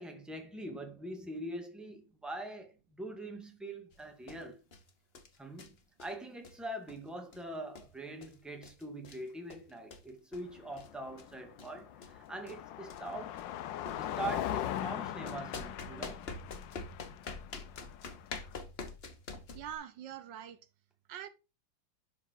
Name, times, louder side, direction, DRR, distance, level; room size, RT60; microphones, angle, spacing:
voice 1, 0.0-4.6 5.4-13.4 13.9-16.3, right 1 dB, ahead, 1.7 m, -43 dB
sound 1, 3.9-4.0 4.3-4.4 4.7-4.9 5.2-5.7 6.0-6.1 6.4-6.6 6.9-7.0 7.3-7.4 7.8-8.4 8.6-9.2 9.5-10.5 10.8-10.9 11.2-11.3 11.6-11.7 12.0-12.2 12.5-12.6 12.9-13.1 13.4-13.5 13.9-14.3 15.3-19.7, left 4 dB, 40° left, 1.2 m, -45 dB
Car passing by, 10.3-18.6, left 11 dB, 80° left, 1.3 m, -40 dB
voice 2, 19.5-20.6 21.1-21.3, right 10 dB, 75° right, 1.3 m, -43 dB
11.5 x 4.8 x 4.5 m
omnidirectional pair, 2.0 m